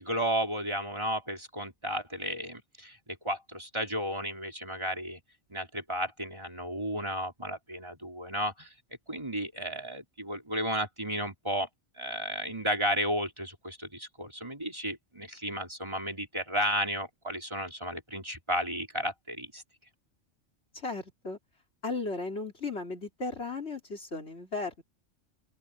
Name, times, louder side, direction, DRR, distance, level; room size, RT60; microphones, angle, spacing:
voice 1, 0.0-5.2 5.5-8.7 9.1-11.7 11.9-19.6, equal, 25° right, 3.9 m, -33 dB
voice 2, 20.7-21.4 21.8-24.8, left 3 dB, 60° left, 3.6 m, -35 dB
open air
omnidirectional pair, 1.2 m